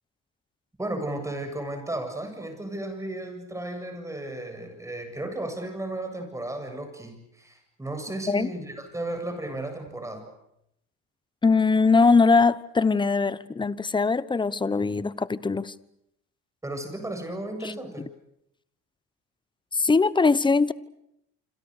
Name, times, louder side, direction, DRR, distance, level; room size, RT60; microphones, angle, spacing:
voice 1, 0.8-10.2 16.6-18.1, right 1 dB, 10° right, 7.6 m, -34 dB
voice 2, 11.4-15.7 17.6-17.7 19.7-20.7, left 4 dB, 15° left, 1.0 m, -21 dB
27.0 x 26.5 x 6.7 m
supercardioid pair, 100°, 31 cm